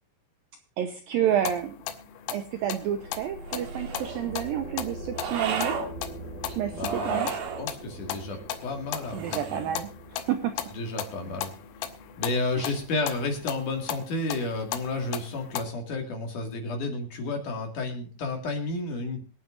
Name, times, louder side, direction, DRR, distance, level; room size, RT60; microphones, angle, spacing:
voice 1, 0.8-1.8 2.3-5.7 6.5-7.3 9.1-10.6 12.6-12.8, right 10 dB, 80° right, 7 dB, 2.1 m, -30 dB
sound 1, 1.3-15.6, left 10 dB, 75° left, 2.8 m, -38 dB
sound 2, 2.5-14.0, right 2 dB, 30° right, 4.5 m, -43 dB
sound 3, 3.4-4.3 5.1-5.9 6.8-7.7 9.0-9.8, right 6 dB, 60° right, 3.1 m, -34 dB
voice 2, 6.7-9.8 10.7-11.5 12.2-19.3, left 2 dB, 50° left, 3 dB, 3.1 m, -32 dB
25.0 x 9.0 x 2.5 m, 0.35 s
omnidirectional pair, 5.1 m